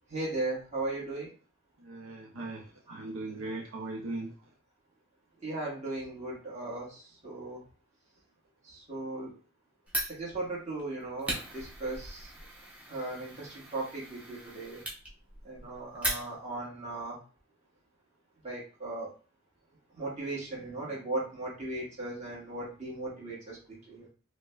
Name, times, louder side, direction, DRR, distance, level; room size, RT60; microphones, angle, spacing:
voice 1, 0.1-1.3 2.9-3.0 5.4-7.6 8.6-9.3 10.1-12.3 12.9-14.8 15.4-17.2 18.4-19.1 19.9-24.1, right 2 dB, 30° right, -6 dB, 1.4 m, -37 dB
voice 2, 1.8-4.3, right 2 dB, 80° right, -1 dB, 0.6 m, -39 dB
Fire, 9.9-16.7, equal, 5° right, 0.7 m, -39 dB
4.7 x 2.1 x 2.3 m, 0.37 s
head